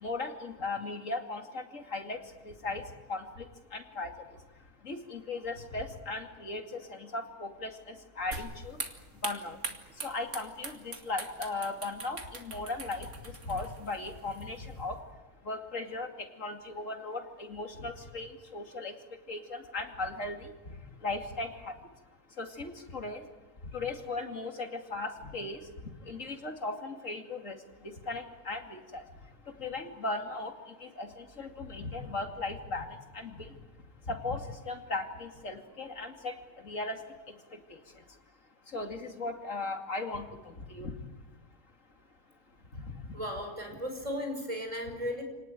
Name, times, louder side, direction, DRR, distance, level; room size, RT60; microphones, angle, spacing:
voice 1, 0.0-2.2 2.6-2.8 3.1-3.2 3.7-4.1 4.8-7.7 8.2-8.8 9.2-9.6 10.0-13.1 13.5-15.0 15.5-16.1 16.4-18.9 19.3-20.5 21.0-21.7 22.4-23.2 23.7-25.6 26.1-27.6 27.8-29.0 29.6-30.5 30.8-32.9 33.1-33.5 34.1-36.3 36.6-37.0 37.7-37.8 38.7-40.3 40.7-40.9, left 3 dB, 55° left, 4 dB, 2.8 m, -37 dB
sound 1, 8.3-14.9, right 3 dB, 50° right, 2.6 m, -43 dB
voice 2, 43.1-45.2, equal, 20° right, 4 dB, 5.3 m, -35 dB
29.0 x 19.0 x 9.1 m, 1.2 s
omnidirectional pair, 1.6 m